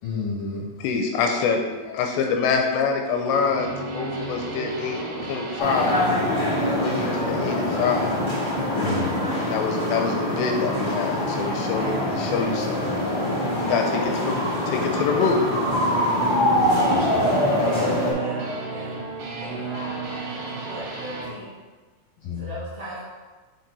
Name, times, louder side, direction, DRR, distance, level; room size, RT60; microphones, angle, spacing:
voice 1, 0.0-0.7 8.8-9.2 16.6-17.3 22.2-22.6, left 5 dB, 65° left, -6 dB, 2.4 m, -32 dB
voice 2, 0.8-6.0 6.6-8.1 9.5-12.9 13.6-15.4, left 5 dB, 85° left, 2 dB, 2.7 m, -25 dB
sound 1, 3.1-21.4, right 3 dB, 65° right, 2.1 m, -34 dB
sound 2, 5.6-18.1, left 1 dB, 40° left, 1.4 m, -24 dB
voice 3, 17.4-18.9 19.4-21.5 22.4-23.0, equal, 85° right, -8 dB, 1.3 m, -38 dB
6.0 x 4.6 x 3.9 m, 1.4 s
omnidirectional pair, 5.1 m